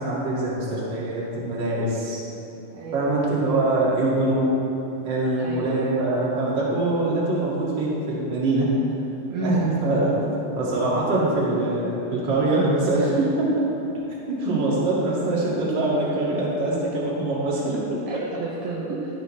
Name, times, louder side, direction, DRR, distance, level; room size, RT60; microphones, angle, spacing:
voice 1, 0.0-2.2 2.9-4.5 5.1-8.7 9.4-13.7 14.3-18.0, right 2 dB, 40° right, -6 dB, 2.1 m, -23 dB
voice 2, 2.7-3.5 5.4-5.9 9.3-9.9 18.1-19.1, right 2 dB, 75° right, -3 dB, 2.0 m, -31 dB
14.5 x 7.3 x 3.2 m, 3.0 s
omnidirectional pair, 4.2 m